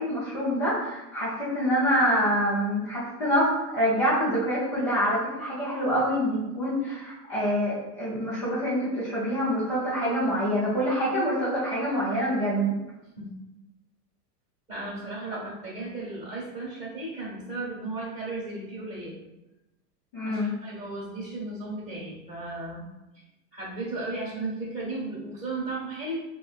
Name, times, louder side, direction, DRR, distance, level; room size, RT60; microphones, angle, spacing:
voice 1, 0.0-12.8 20.1-20.5, equal, 20° left, -9 dB, 0.3 m, -26 dB
voice 2, 14.7-19.2 20.2-22.9 23.5-26.2, right 2 dB, 15° right, -5 dB, 1.4 m, -35 dB
4.3 x 2.3 x 2.3 m, 0.99 s
supercardioid pair, 145°, 50 cm